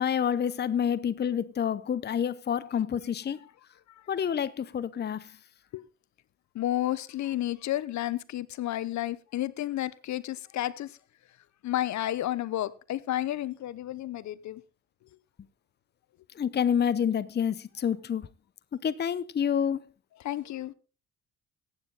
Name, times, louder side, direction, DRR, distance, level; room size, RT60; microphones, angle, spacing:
voice 1, 0.0-3.4 4.1-5.4 16.3-18.3 18.8-19.9, left 8 dB, 35° left, 0.7 m, -28 dB
voice 2, 6.5-11.0 11.6-14.6 20.2-20.7, left 13 dB, 65° left, 0.8 m, -31 dB
15.0 x 9.0 x 3.9 m
cardioid pair, 90°, 30 cm